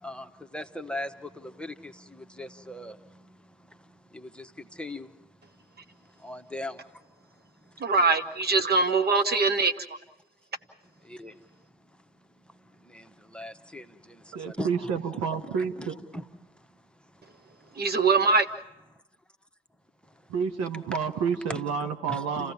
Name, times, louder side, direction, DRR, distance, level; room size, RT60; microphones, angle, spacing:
voice 1, 0.0-3.3 4.1-5.1 6.2-7.0 11.0-11.4 12.8-15.0 15.6-15.9 16.1-16.2 21.5-21.6 22.1-22.5, left 1 dB, 5° left, 8 dB, 1.3 m, -39 dB
voice 2, 7.8-9.8 17.8-18.5, right 4 dB, 35° right, 7 dB, 1.1 m, -22 dB
voice 3, 14.3-16.0 20.3-22.5, right 6 dB, 60° right, 6 dB, 1.3 m, -29 dB
29.0 x 15.5 x 7.2 m, 0.93 s
figure-of-eight pair, 45°, 29 cm